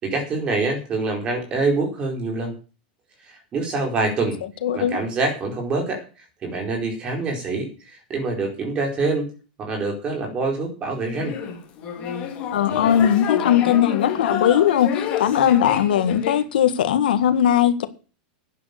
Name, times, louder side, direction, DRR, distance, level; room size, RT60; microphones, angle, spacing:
voice 1, 0.0-2.6 3.5-4.4 4.7-6.0 6.4-9.3 9.6-11.3, right 3 dB, 20° right, 4.4 m, -25 dB
voice 2, 4.6-5.0 12.5-17.9, left 10 dB, 85° left, 1.8 m, -19 dB
sound 1, 11.1-16.4, left 8 dB, 25° left, 3.3 m, -28 dB
11.0 x 9.5 x 6.8 m
supercardioid pair, 170°, 5 cm